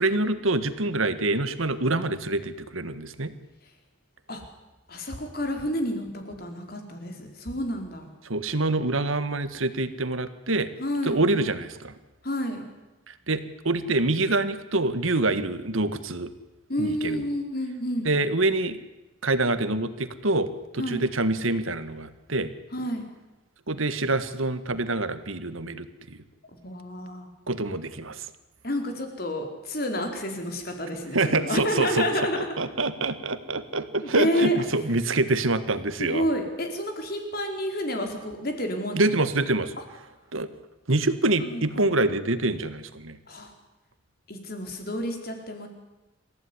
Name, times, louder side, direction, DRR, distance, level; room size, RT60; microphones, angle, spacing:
voice 1, 0.0-3.3 8.3-10.7 11.0-11.9 13.1-16.3 16.8-17.2 18.1-18.8 19.2-22.5 23.7-26.2 27.5-28.3 31.1-32.1 32.3-36.2 39.0-39.8 40.3-40.5 40.9-43.2, right 2 dB, 80° right, 12 dB, 1.8 m, -26 dB
voice 2, 4.9-8.1 10.8-11.2 12.2-12.7 16.7-18.1 20.8-21.0 22.7-23.1 26.6-27.3 28.6-32.5 34.0-34.6 36.0-39.2 39.8-39.9 41.1-42.0 43.3-43.5 44.3-45.7, equal, 45° left, 4 dB, 4.4 m, -30 dB
27.0 x 15.5 x 10.0 m, 1.1 s
head